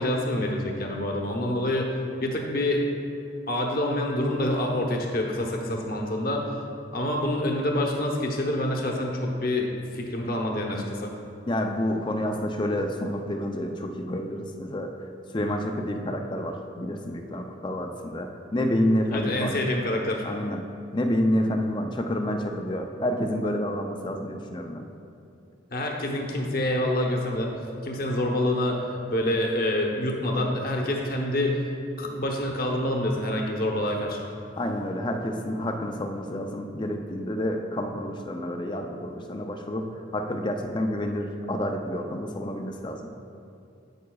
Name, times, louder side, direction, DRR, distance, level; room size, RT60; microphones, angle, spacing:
voice 1, 0.0-1.9 2.2-2.8 3.5-6.6 6.9-11.1 19.1-20.2 25.7-31.6 32.0-34.3, left 1 dB, 50° left, 0 dB, 0.9 m, -27 dB
voice 2, 11.5-14.9 15.3-19.6 20.2-20.6 20.9-24.9 34.6-39.9 40.1-43.1, left 1 dB, 25° left, 4 dB, 0.5 m, -29 dB
9.4 x 8.2 x 2.3 m, 2.6 s
head